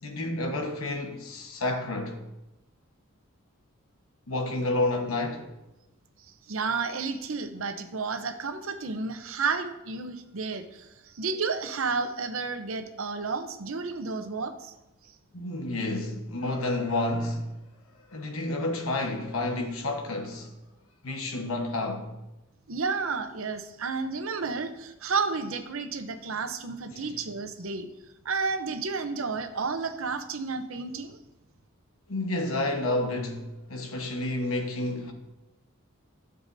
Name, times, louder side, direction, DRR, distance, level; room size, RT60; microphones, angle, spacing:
voice 1, 0.0-2.2 4.3-5.5 15.3-17.5 18.1-20.5 21.0-22.1 26.9-27.2 32.1-35.1, left 2 dB, 80° left, 1.2 m, -30 dB
voice 2, 6.5-10.9 11.1-14.7 22.7-27.9 28.2-31.2, right 4 dB, 75° right, 0.8 m, -31 dB
13.0 x 6.9 x 2.7 m
head